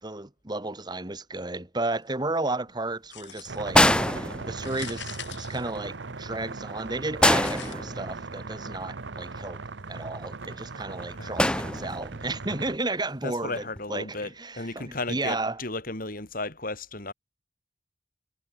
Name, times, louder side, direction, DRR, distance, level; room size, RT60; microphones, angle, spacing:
voice 1, 0.0-9.6 9.9-15.6, right 2 dB, 25° right, 1.8 m, -33 dB
sound 1, 3.1-3.8 4.5-6.3 7.3-7.7, left 9 dB, 85° left, 4.3 m, -42 dB
sound 2, 3.5-12.8, right 3 dB, 85° right, 1.0 m, -39 dB
sound 3, 3.7-5.0 7.2-8.4 11.4-12.3 13.6-13.8, left 1 dB, 5° left, 0.8 m, -24 dB
voice 2, 11.0-11.4 13.2-17.1, left 2 dB, 50° left, 6.2 m, -35 dB
head